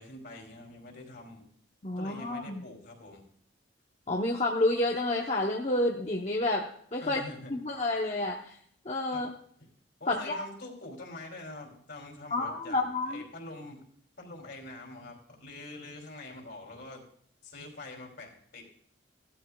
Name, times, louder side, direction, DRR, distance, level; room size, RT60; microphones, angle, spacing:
voice 1, 0.0-1.4 1.9-3.2 7.0-7.7 9.1-9.3 10.0-13.8 14.2-17.0 17.4-18.6, left 2 dB, 60° left, 1 dB, 2.8 m, -45 dB
voice 2, 1.8-2.7 4.1-7.2 7.5-8.6 8.8-9.3 10.1-10.4 12.3-13.2, left 2 dB, 35° left, -1 dB, 0.8 m, -29 dB
17.0 x 13.0 x 2.3 m, 0.64 s
head